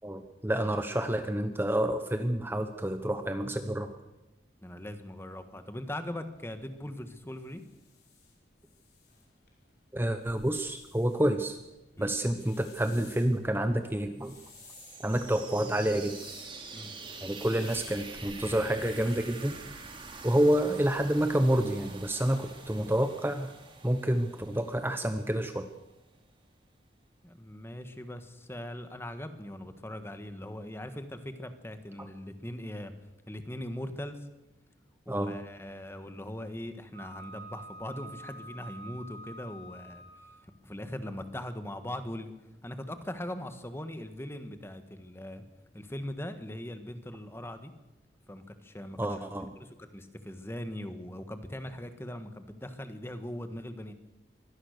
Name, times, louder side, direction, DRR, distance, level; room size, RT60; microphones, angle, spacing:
voice 1, 0.0-3.9 9.9-11.6 12.0-14.4 15.0-16.2 17.2-19.6 20.2-23.5 23.8-25.7 32.0-32.1 35.1-35.4 49.0-49.5, right 1 dB, 15° right, 8 dB, 0.9 m, -28 dB
voice 2, 4.6-7.6 12.0-12.1 16.7-16.9 27.2-32.9 33.3-34.3 35.0-45.4 45.7-47.7 48.3-49.2 49.5-53.9, left 1 dB, 15° left, 9 dB, 1.5 m, -40 dB
sound 1, 6.4-22.5, left 3 dB, 60° left, 5.4 m, -56 dB
sound 2, 14.2-25.9, right 4 dB, 30° right, 2.9 m, -46 dB
Wind instrument woodwind instrument, 36.9-40.5, right 1 dB, 75° right, 6.5 m, -47 dB
23.5 x 17.5 x 6.6 m, 0.98 s
head